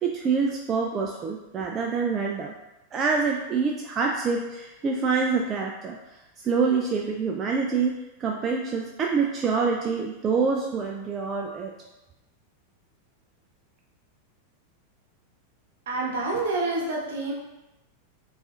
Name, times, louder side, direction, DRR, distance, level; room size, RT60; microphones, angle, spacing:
voice 1, 0.0-2.5 2.9-6.0 6.4-11.7, right 5 dB, 25° right, 1 dB, 0.3 m, -26 dB
voice 2, 15.9-17.3, right 3 dB, 60° right, -3 dB, 0.9 m, -27 dB
4.7 x 2.5 x 2.4 m, 0.99 s
figure-of-eight pair, 90°, 0 cm